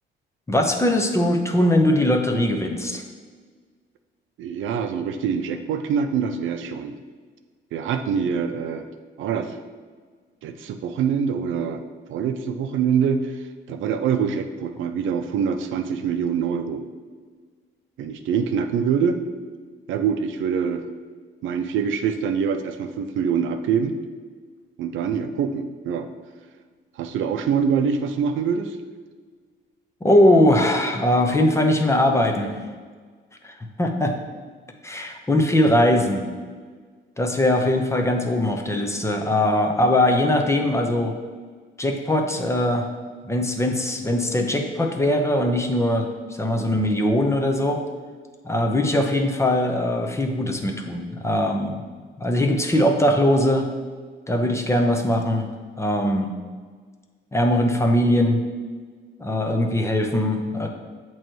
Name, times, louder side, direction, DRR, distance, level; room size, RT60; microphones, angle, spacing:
voice 1, 0.5-3.0 30.0-32.5 33.4-34.2 34.8-36.3 37.2-41.1 41.8-42.9 43.2-47.8 48.4-51.8 52.2-53.7 54.3-55.5 55.8-56.3 57.3-58.4 59.2-60.7, left 1 dB, 15° left, 3 dB, 0.8 m, -21 dB
voice 2, 4.4-6.9 7.7-8.9 9.2-9.6 10.4-11.8 12.1-16.8 18.0-19.2 19.9-20.8 21.4-24.0 24.8-26.1 27.0-28.8, right 7 dB, 80° right, 7 dB, 0.5 m, -24 dB
7.6 x 3.1 x 4.5 m, 1.6 s
cardioid pair, 90°, 20 cm